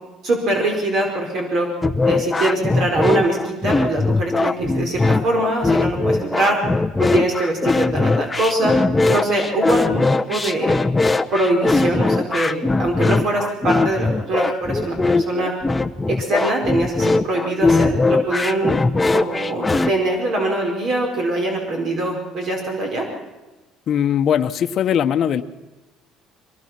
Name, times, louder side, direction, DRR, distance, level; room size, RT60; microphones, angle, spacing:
voice 1, 0.2-1.7 2.0-6.6 7.0-8.7 9.1-10.8 11.3-15.5 16.1-18.7 19.1-23.0, right 2 dB, 55° right, 1 dB, 4.7 m, -23 dB
sound 1, 1.8-19.9, left 3 dB, 10° left, 0.8 m, -20 dB
voice 2, 23.9-25.4, left 9 dB, 45° left, 9 dB, 1.0 m, -19 dB
23.5 x 19.0 x 5.9 m, 1.1 s
cardioid pair, 140°, 0 cm